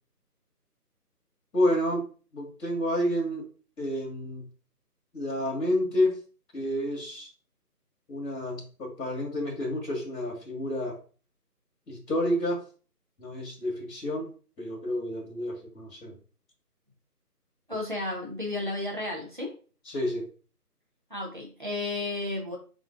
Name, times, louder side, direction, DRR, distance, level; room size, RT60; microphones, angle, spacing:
voice 1, 1.5-2.1 2.3-3.4 3.8-4.5 5.1-6.2 6.5-7.3 8.1-11.0 11.9-12.6 13.2-14.3 14.6-16.1 19.9-20.3, left 1 dB, 90° left, 0 dB, 1.6 m, -29 dB
voice 2, 17.7-19.5 21.1-22.6, left 2 dB, 30° right, -1 dB, 0.8 m, -33 dB
3.8 x 3.7 x 2.4 m, 0.39 s
figure-of-eight pair, 175°, 48 cm